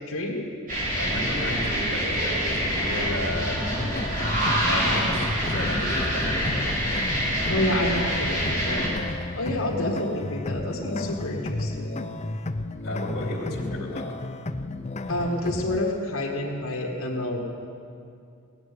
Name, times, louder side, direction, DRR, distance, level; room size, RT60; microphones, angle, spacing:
voice 1, 0.1-0.5 7.5-12.1 15.1-17.4, left 1 dB, 65° left, -2 dB, 1.9 m, -29 dB
sound 1, 0.7-8.9, equal, 40° right, 3.5 m, -26 dB
voice 2, 0.9-3.6 4.6-6.8 12.8-14.0, left 1 dB, 45° left, -3 dB, 2.9 m, -33 dB
sound 2, 3.8-15.8, left 2 dB, 30° left, 0.5 m, -33 dB
17.5 x 7.1 x 9.6 m, 2.4 s
head